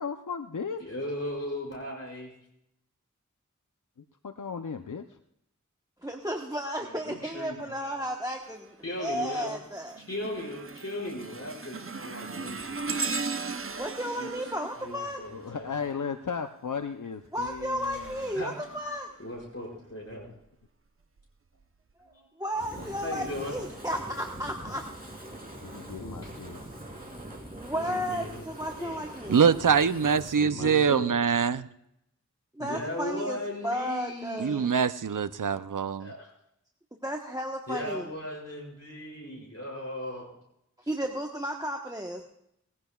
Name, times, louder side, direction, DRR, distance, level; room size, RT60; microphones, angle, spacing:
voice 1, 0.0-0.8 4.2-5.2 15.3-18.4 22.8-22.9 25.6-26.6 30.4-31.1, left 6 dB, 75° left, 0.6 m, -36 dB
voice 2, 0.8-2.3 6.8-7.9 8.8-9.5 10.1-12.8 14.2-14.3 14.8-15.7 18.3-18.5 19.2-20.3 22.1-22.2 23.0-23.5 26.0-26.3 27.7-28.4 28.7-29.0 30.4-31.2 32.6-34.8 36.0-36.3 37.7-40.3, left 1 dB, 55° left, 5.6 m, -37 dB
voice 3, 6.0-10.0 13.8-15.2 17.3-19.1 22.4-24.8 26.6-26.8 27.1-29.4 32.6-33.4 33.6-34.7 36.9-38.1 40.9-42.2, equal, 10° right, 1.1 m, -33 dB
sound 1, 8.3-8.7 9.2-16.0 17.2-19.5 20.1-20.3 21.2-21.3, right 4 dB, 45° right, 0.6 m, -38 dB
Fire, 22.5-30.4, right 1 dB, 30° right, 3.1 m, -43 dB
voice 4, 29.3-31.7 34.4-36.1, right 6 dB, 85° right, 0.5 m, -24 dB
20.5 x 15.5 x 2.3 m
wide cardioid pair, 45°, 31 cm